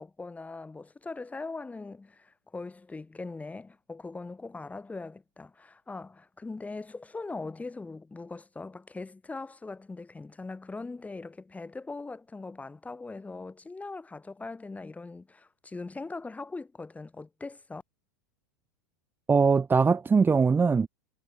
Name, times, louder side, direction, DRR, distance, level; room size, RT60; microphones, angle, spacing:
voice 1, 0.0-17.8, left 3 dB, 10° left, 5.4 m, -41 dB
voice 2, 19.3-20.9, right 5 dB, 20° right, 1.4 m, -21 dB
hypercardioid pair, 105°, 12 cm